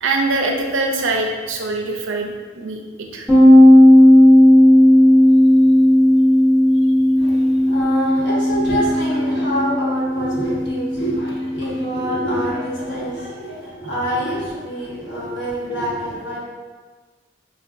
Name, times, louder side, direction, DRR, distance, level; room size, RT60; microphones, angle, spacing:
voice 1, 0.0-2.3 2.5-3.3, right 2 dB, 90° right, 2 dB, 0.5 m, -23 dB
sound 1, 3.3-12.7, left 1 dB, 5° left, 0.8 m, -13 dB
voice 2, 7.2-16.4, equal, 65° left, -6 dB, 1.1 m, -26 dB
4.9 x 2.2 x 2.5 m, 1.4 s
head